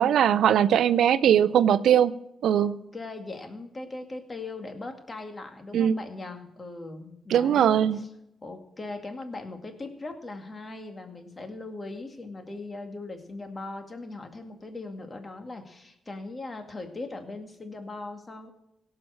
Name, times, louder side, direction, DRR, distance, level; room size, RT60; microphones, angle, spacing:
voice 1, 0.0-2.1 2.4-2.7 5.7-6.0 7.3-8.0, right 9 dB, 75° right, 14 dB, 0.4 m, -20 dB
voice 2, 2.5-8.1 8.4-18.5, left 2 dB, 35° left, 5 dB, 2.1 m, -39 dB
17.0 x 5.9 x 6.4 m, 0.85 s
supercardioid pair, 55°, 0 cm